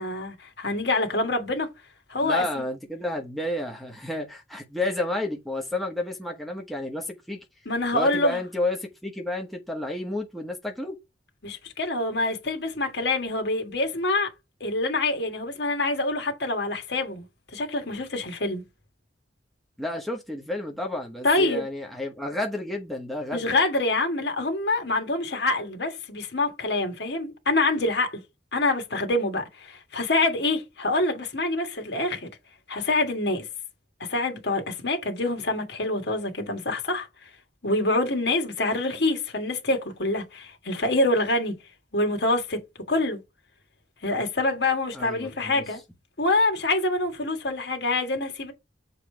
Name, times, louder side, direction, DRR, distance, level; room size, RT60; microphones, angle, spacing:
voice 1, 0.0-1.7 2.1-2.4 7.7-8.4 11.4-14.3 14.6-17.3 17.5-18.6 21.2-21.7 23.3-28.2 28.5-32.3 32.7-33.5 34.1-37.1 37.6-41.5 41.9-42.6 42.9-43.2 44.0-45.8 46.2-48.5, left 2 dB, 65° left, 1.7 m, -26 dB
voice 2, 2.2-7.4 7.9-11.0 19.8-23.5 44.9-45.6, left 1 dB, ahead, 1.0 m, -31 dB
6.9 x 3.3 x 4.6 m
head